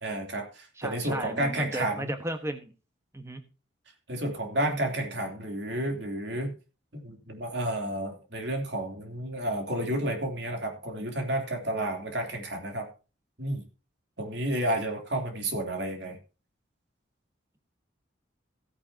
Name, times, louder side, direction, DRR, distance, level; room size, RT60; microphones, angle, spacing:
voice 1, 0.0-2.1 4.1-6.5 6.9-12.9 13.4-13.6 14.2-16.2, right 1 dB, 60° right, 3 dB, 3.2 m, -31 dB
voice 2, 0.8-2.7 3.1-3.4, right 1 dB, 15° right, 7 dB, 1.3 m, -35 dB
16.0 x 9.8 x 2.9 m, 0.32 s
head